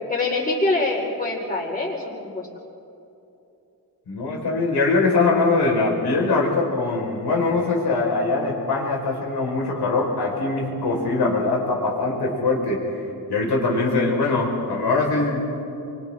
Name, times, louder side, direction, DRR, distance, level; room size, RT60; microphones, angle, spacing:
voice 1, 0.1-2.5, left 2 dB, 20° left, -3 dB, 4.8 m, -24 dB
voice 2, 4.1-13.0 13.3-15.4, left 3 dB, 85° left, -2 dB, 5.1 m, -22 dB
29.0 x 24.5 x 3.8 m, 2.8 s
wide cardioid pair, 105°, 39 cm